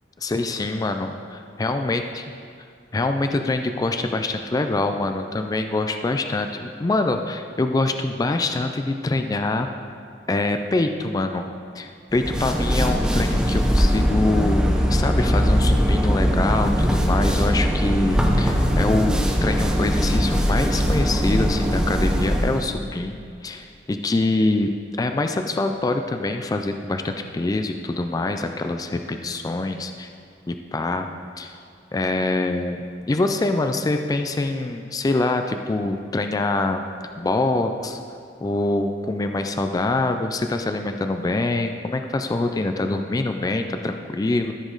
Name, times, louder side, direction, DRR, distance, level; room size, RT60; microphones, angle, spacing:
voice 1, 0.2-2.0 2.9-9.7 10.3-11.5 11.8-30.1 30.5-31.1 31.4-31.6 31.9-36.8 37.2-38.0 38.4-44.5, left 2 dB, 20° left, 6 dB, 0.3 m, -24 dB
sound 1, 12.1-22.7, equal, 5° right, 0.7 m, -20 dB
13.5 x 5.1 x 3.9 m, 2.2 s
head